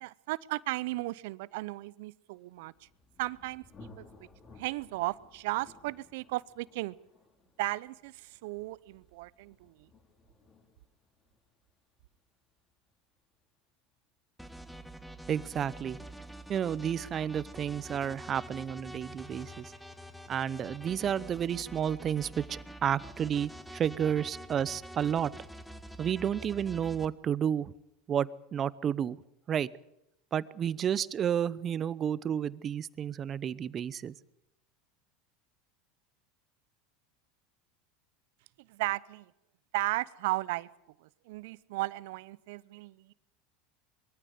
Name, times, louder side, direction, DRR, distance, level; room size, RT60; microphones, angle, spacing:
voice 1, 0.0-2.7 3.2-4.0 4.6-6.9 7.6-9.8 38.7-39.3 39.7-40.7 41.3-43.1, right 20 dB, 70° right, 21 dB, 0.7 m, -35 dB
Thunder, 2.4-13.9, left 3 dB, 35° left, 5.2 m, -59 dB
sound 1, 14.4-27.1, right 1 dB, ahead, 1.7 m, -46 dB
voice 2, 15.3-16.0 16.5-19.7 20.3-25.3 26.0-27.7 28.1-29.2 29.5-29.7 30.3-34.1, right 9 dB, 35° right, 20 dB, 0.8 m, -31 dB
22.5 x 14.5 x 9.4 m, 0.83 s
hypercardioid pair, 95°, 0 cm